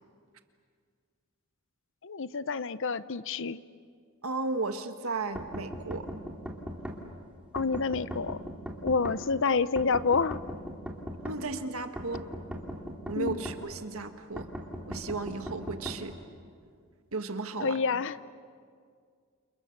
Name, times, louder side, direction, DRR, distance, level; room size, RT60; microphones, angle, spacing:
voice 1, 2.0-3.6 7.5-8.4 8.8-10.4 13.2-13.5 17.6-18.2, left 4 dB, 60° left, 15 dB, 0.7 m, -28 dB
voice 2, 4.2-6.1 11.2-12.3 13.1-14.5 14.9-16.2 17.1-17.8, right 3 dB, 75° right, 7 dB, 1.7 m, -34 dB
sound 1, 5.4-7.0 7.6-9.2 9.8-11.4 12.0-13.6 14.4-16.0, equal, 5° right, 2.9 m, -38 dB
29.0 x 29.0 x 6.7 m, 2.1 s
head